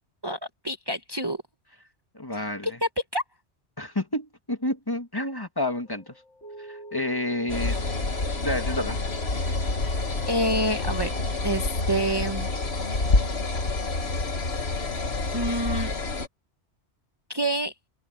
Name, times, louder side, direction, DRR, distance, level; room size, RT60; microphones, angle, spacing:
voice 1, 0.6-1.4 2.3-3.2 10.3-11.1 11.4-12.5 15.3-15.9 17.3-17.7, right 1 dB, 25° right, 1.1 m, -27 dB
voice 2, 2.1-2.8 3.8-6.2 6.6-7.8 8.4-9.0, left 1 dB, 20° left, 1.8 m, -30 dB
sound 1, 5.8-13.8, right 2 dB, 90° left, 4.5 m, -46 dB
sound 2, 7.5-16.3, left 3 dB, 70° left, 2.1 m, -27 dB
omnidirectional pair, 1.1 m